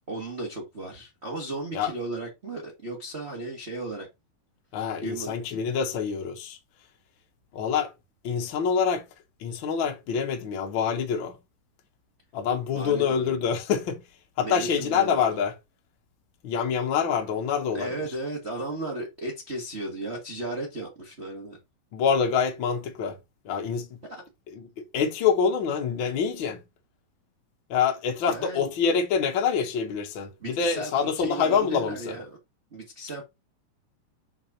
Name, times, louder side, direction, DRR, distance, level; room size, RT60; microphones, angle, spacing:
voice 1, 0.1-4.1 5.0-5.4 12.7-13.5 14.4-15.3 17.7-21.6 24.1-24.2 28.2-28.7 30.4-30.9 31.2-32.4 32.7-33.2, right 2 dB, 80° right, 0.5 m, -35 dB
voice 2, 4.7-6.6 7.5-7.9 8.2-9.0 9.4-11.3 12.3-14.0 14.4-15.5 16.4-17.9 21.9-23.2 23.4-24.0 24.5-26.6 27.7-32.2, left 6 dB, 85° left, 1.0 m, -26 dB
6.0 x 4.2 x 4.1 m
omnidirectional pair, 4.0 m